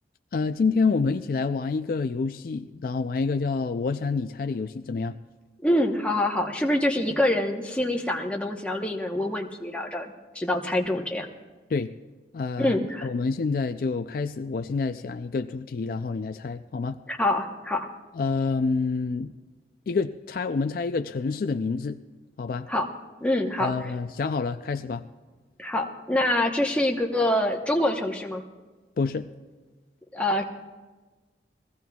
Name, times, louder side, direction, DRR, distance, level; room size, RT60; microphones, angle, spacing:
voice 1, 0.3-5.2 11.7-11.9 12.3-12.8 13.0-17.0 18.1-19.3 19.9-22.0 22.4-22.7 23.6-25.1 29.0-29.3, left 4 dB, 50° left, 9 dB, 0.3 m, -27 dB
voice 2, 5.6-11.3 12.6-13.1 17.1-17.9 22.7-22.9 23.2-23.9 25.6-28.4 30.1-30.4, left 1 dB, 5° left, 1 dB, 0.9 m, -25 dB
21.5 x 15.5 x 2.3 m, 1.3 s
head